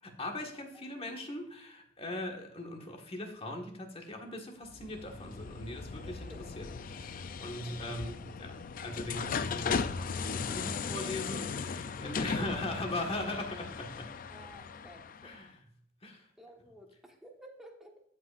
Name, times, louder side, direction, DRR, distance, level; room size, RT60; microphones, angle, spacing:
voice 1, 0.0-14.1 15.2-15.6 16.0-16.3, left 1 dB, 30° left, 2 dB, 1.5 m, -40 dB
voice 2, 0.5-1.3 6.0-6.5 7.5-8.0 11.9-12.6 14.3-15.4 16.4-18.0, right 1 dB, ahead, 0 dB, 1.3 m, -53 dB
sound 1, 4.7-15.4, left 5 dB, 45° left, 0.4 m, -37 dB
15.0 x 5.4 x 2.5 m, 0.72 s
head